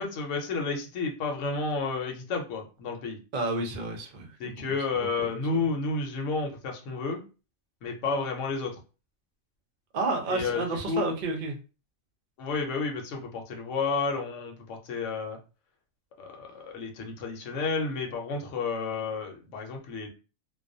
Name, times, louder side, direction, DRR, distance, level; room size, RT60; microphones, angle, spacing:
voice 1, 0.0-3.2 4.4-7.2 7.8-8.8 10.3-10.6 10.9-11.0 12.4-15.4 16.2-20.1, left 4 dB, 70° left, 2 dB, 1.0 m, -31 dB
voice 2, 3.3-4.5 5.0-5.3 9.9-11.6, right 3 dB, 55° right, 3 dB, 0.5 m, -31 dB
2.3 x 2.2 x 2.5 m, 0.33 s
omnidirectional pair, 1.4 m